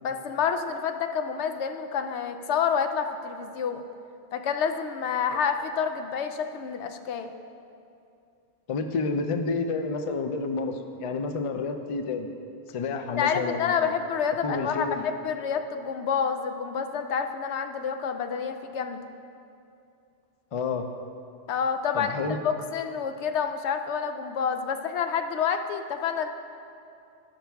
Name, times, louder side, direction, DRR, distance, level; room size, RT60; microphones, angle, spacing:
voice 1, 0.0-3.8 4.3-7.3 13.2-19.0 21.5-26.3, left 7 dB, 80° left, 7 dB, 0.9 m, -28 dB
voice 2, 8.7-12.3 12.7-13.9 14.4-15.0 20.5-20.9 21.9-22.4, left 4 dB, 45° left, 6 dB, 0.4 m, -29 dB
15.0 x 5.9 x 3.5 m, 2.5 s
omnidirectional pair, 1.2 m